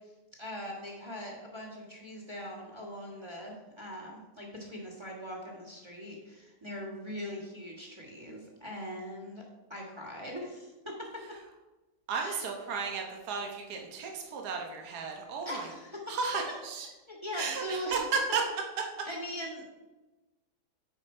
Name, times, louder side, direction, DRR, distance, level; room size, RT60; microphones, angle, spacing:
voice 1, 0.4-9.4 9.7-11.4 12.1-12.5 15.4-16.2 17.1-18.0 19.0-19.7, equal, 15° right, -1 dB, 1.4 m, -41 dB
voice 2, 12.1-15.7 16.1-16.9 17.4-18.4, right 5 dB, 70° right, 1 dB, 1.6 m, -34 dB
9.3 x 5.0 x 4.3 m, 1.1 s
omnidirectional pair, 1.8 m